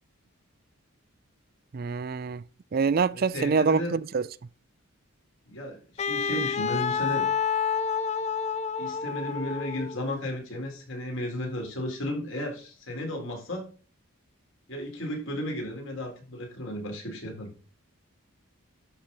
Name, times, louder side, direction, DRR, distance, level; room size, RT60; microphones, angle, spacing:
voice 1, 1.7-2.4 2.7-4.3, right 5 dB, 45° right, 0.4 m, -25 dB
voice 2, 3.1-3.9 5.5-7.3 8.8-13.7 14.7-17.5, left 1 dB, 65° left, 4.2 m, -34 dB
Wind instrument woodwind instrument, 6.0-10.0, left 6 dB, 30° left, 0.4 m, -29 dB
11.5 x 4.5 x 5.5 m
head